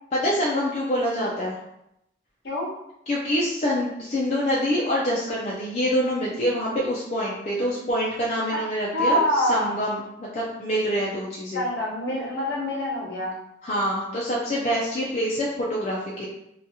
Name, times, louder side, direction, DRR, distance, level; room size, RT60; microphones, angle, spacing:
voice 1, 0.1-1.6 3.1-11.6 13.6-16.3, equal, 35° left, -5 dB, 0.4 m, -26 dB
voice 2, 8.9-9.7 11.5-13.4, left 1 dB, 65° left, -4 dB, 0.8 m, -25 dB
2.7 x 2.3 x 2.8 m, 0.81 s
head